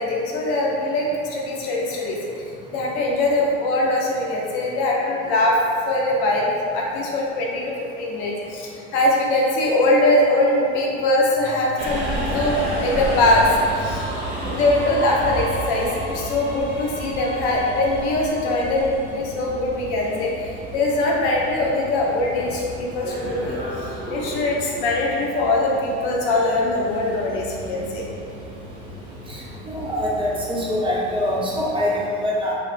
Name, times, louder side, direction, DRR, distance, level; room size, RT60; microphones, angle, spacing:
voice 1, 0.0-2.2 2.4-5.6 5.8-13.5 13.8-14.0 14.4-23.6 24.1-28.1, left 2 dB, 65° left, -3 dB, 0.7 m, -22 dB
Subway metro underground, 11.8-31.7, right 1 dB, 45° right, 1.1 m, -32 dB
voice 2, 29.7-32.6, left 1 dB, 15° right, -6 dB, 0.7 m, -23 dB
2.7 x 2.5 x 3.2 m, 2.4 s
hypercardioid pair, 75°, 33 cm